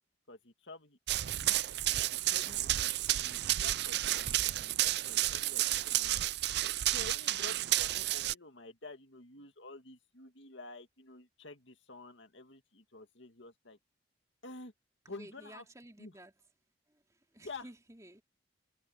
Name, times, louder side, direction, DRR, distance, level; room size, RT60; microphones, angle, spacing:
voice 1, 0.3-1.0 1.4-1.6 1.8-6.2 6.9-13.8 14.4-14.7 15.1-15.6 16.0-16.1 17.4-17.7, left 2 dB, 65° left, 2.2 m, -50 dB
Run, 1.1-8.3, right 14 dB, 55° right, 0.4 m, -31 dB
voice 2, 15.0-16.4 16.9-18.2, right 1 dB, 15° right, 3.2 m, -54 dB
head